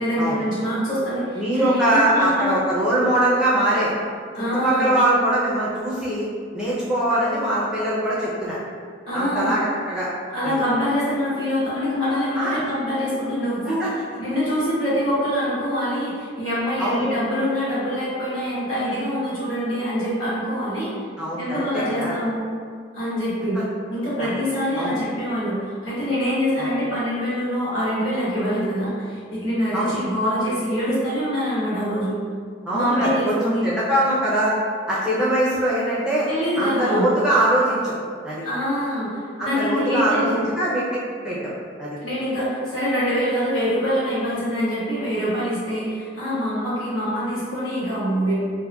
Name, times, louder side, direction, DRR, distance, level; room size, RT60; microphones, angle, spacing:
voice 1, 0.0-2.6 4.3-4.9 9.0-9.5 10.3-13.9 14.2-20.9 21.4-22.4 22.9-23.6 23.9-32.1 32.7-33.7 36.2-37.1 38.4-40.5 42.0-48.3, equal, 90° left, -10 dB, 1.2 m, -24 dB
voice 2, 1.4-3.9 4.6-6.3 6.5-8.6 9.1-10.1 10.4-10.6 12.4-12.6 13.8-13.9 16.8-17.0 21.2-22.1 24.2-24.3 24.7-24.9 26.6-26.7 29.7-30.0 32.6-34.6 34.9-36.3 36.6-37.9 38.2-38.4 39.4-40.9 41.2-41.5 41.8-42.0, right 1 dB, 5° right, -9 dB, 0.5 m, -22 dB
3.9 x 2.1 x 2.3 m, 2.1 s
head